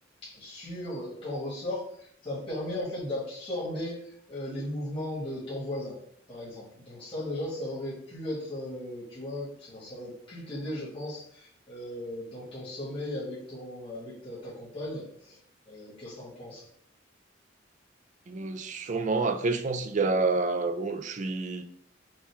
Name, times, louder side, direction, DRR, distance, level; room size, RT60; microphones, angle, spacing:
voice 1, 0.2-6.0 6.3-15.4 15.7-16.7, left 1 dB, 30° left, 1.6 m, -36 dB
voice 2, 18.3-21.6, right 3 dB, 40° right, 0.4 m, -28 dB
5.4 x 2.4 x 3.4 m
head